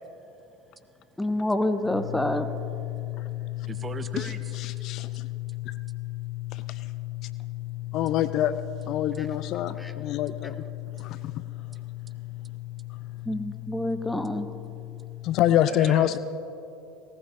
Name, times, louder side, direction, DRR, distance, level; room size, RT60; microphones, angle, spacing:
voice 1, 1.2-2.5 9.2-9.3 9.8-9.9 13.3-14.5, left 1 dB, 5° left, 8 dB, 0.9 m, -27 dB
sound 1, 1.8-15.4, left 18 dB, 90° left, 2.2 m, -36 dB
voice 2, 3.7-4.6 8.9-9.0 11.7-11.8 15.7-16.2, right 5 dB, 25° right, 11 dB, 0.8 m, -38 dB
voice 3, 7.9-8.5 8.9-10.6 11.0-11.2 15.2-16.2, left 12 dB, 50° left, 14 dB, 0.4 m, -25 dB
19.0 x 18.5 x 2.6 m, 2.9 s
figure-of-eight pair, 70°, 0 cm